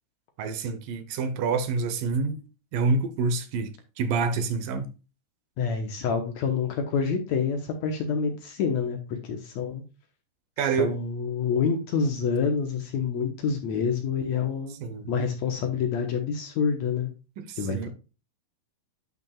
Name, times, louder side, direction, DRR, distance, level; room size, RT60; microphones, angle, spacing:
voice 1, 0.4-2.4 2.7-3.7 4.0-4.9 10.6-10.9 14.8-15.1 17.4-17.9, right 4 dB, 80° right, 2.6 m, -27 dB
voice 2, 5.6-9.8 10.8-14.8 15.1-17.1 17.6-17.9, left 6 dB, 65° left, 2.1 m, -27 dB
10.5 x 5.9 x 2.3 m
omnidirectional pair, 3.9 m